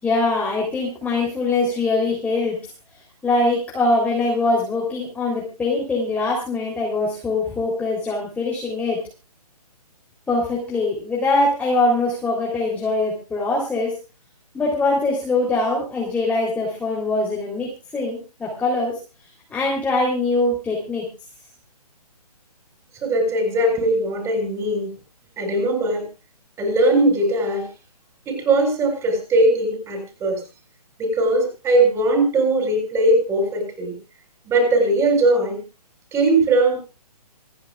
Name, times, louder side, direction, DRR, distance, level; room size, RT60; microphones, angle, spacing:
voice 1, 0.0-2.6 3.2-9.1 10.3-13.9 14.5-19.0 19.5-21.1, left 2 dB, 5° left, -4 dB, 3.6 m, -22 dB
voice 2, 23.0-24.9 25.4-26.1 26.6-27.7 28.3-30.4 31.0-34.0 34.5-35.6 36.1-36.8, right 2 dB, 15° right, 3 dB, 6.8 m, -19 dB
27.5 x 11.0 x 2.5 m, 0.31 s
figure-of-eight pair, 140°, 20 cm